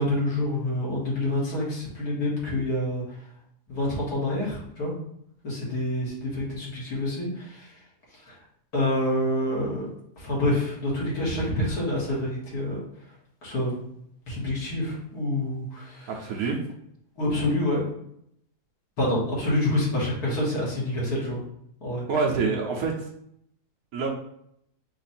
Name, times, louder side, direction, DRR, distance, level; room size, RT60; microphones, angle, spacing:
voice 1, 0.0-3.0 3.7-4.9 5.4-7.7 8.3-8.4 8.7-9.9 10.2-12.8 13.4-13.8 14.3-16.1 17.2-17.8 19.0-21.4 21.8-22.0, left 1 dB, 70° left, -6 dB, 2.2 m, -27 dB
voice 2, 16.1-16.6 22.1-22.9 23.9-24.1, right 4 dB, 65° right, 0 dB, 1.2 m, -26 dB
4.8 x 2.6 x 4.2 m, 0.72 s
omnidirectional pair, 1.7 m